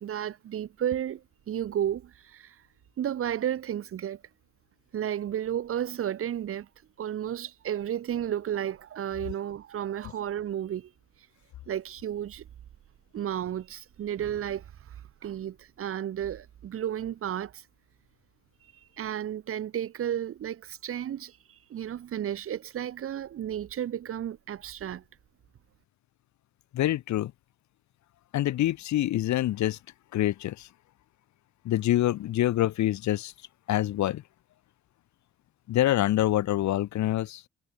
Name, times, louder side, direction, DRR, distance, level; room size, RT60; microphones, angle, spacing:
voice 1, 0.0-2.6 3.0-4.2 4.9-6.7 7.0-10.9 11.7-12.4 13.1-17.7 18.6-25.0, right 10 dB, 50° right, 0.7 m, -33 dB
voice 2, 26.7-27.3 28.3-29.8 30.1-30.7 31.6-33.3 33.7-34.2 35.7-37.4, left 14 dB, 70° left, 0.9 m, -26 dB
cardioid pair, 90°, 30 cm